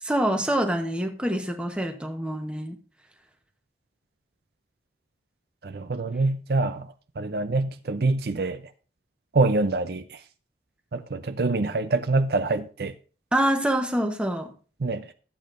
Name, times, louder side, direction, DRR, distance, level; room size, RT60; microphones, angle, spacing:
voice 1, 0.0-2.8 13.3-14.5, right 1 dB, 5° right, 0.9 m, -26 dB
voice 2, 5.6-8.6 9.3-10.2 10.9-12.9 14.8-15.1, right 3 dB, 55° right, 0.5 m, -25 dB
13.5 x 8.5 x 2.5 m
head